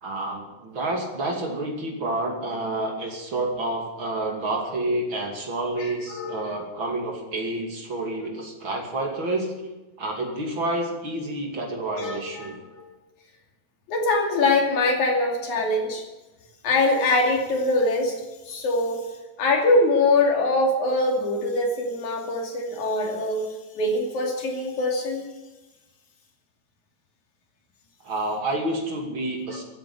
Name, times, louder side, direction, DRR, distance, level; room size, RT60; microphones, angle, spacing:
voice 1, 0.0-9.5 10.0-12.6 28.0-29.6, right 2 dB, 45° right, 2 dB, 3.2 m, -29 dB
voice 2, 5.8-6.6 12.0-12.9 13.9-16.0 16.6-18.2 18.5-19.1 19.4-23.5 23.8-25.3, left 2 dB, 85° left, 2 dB, 4.1 m, -23 dB
14.5 x 9.6 x 9.6 m, 1.1 s
omnidirectional pair, 3.3 m